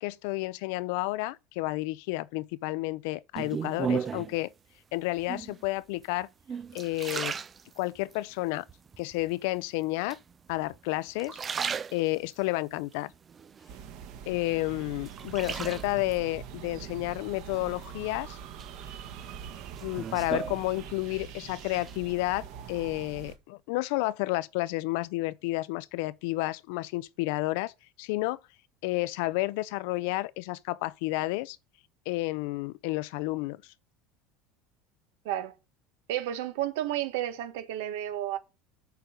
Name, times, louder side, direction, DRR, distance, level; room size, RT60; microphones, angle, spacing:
voice 1, 0.0-4.5 4.9-6.3 6.7-7.3 7.8-8.6 9.0-10.2 10.5-11.4 11.9-13.1 14.3-18.4 19.8-27.7 28.0-28.4 28.8-31.6 32.1-33.6, left 20 dB, 70° left, 0.5 m, -31 dB
sound 1, 3.4-4.4 5.2-5.7 6.2-8.2 8.7-9.3 10.1-10.8 11.1-12.4 12.9-14.1 14.5-16.2 17.5-18.1 18.6-21.2 21.5-22.0, right 6 dB, 20° right, 0.4 m, -36 dB
sound 2, 13.7-23.4, right 8 dB, 60° right, 1.7 m, -43 dB
voice 2, 36.1-38.4, right 12 dB, 90° right, 1.4 m, -31 dB
8.0 x 4.7 x 5.1 m
cardioid pair, 165°, 0 cm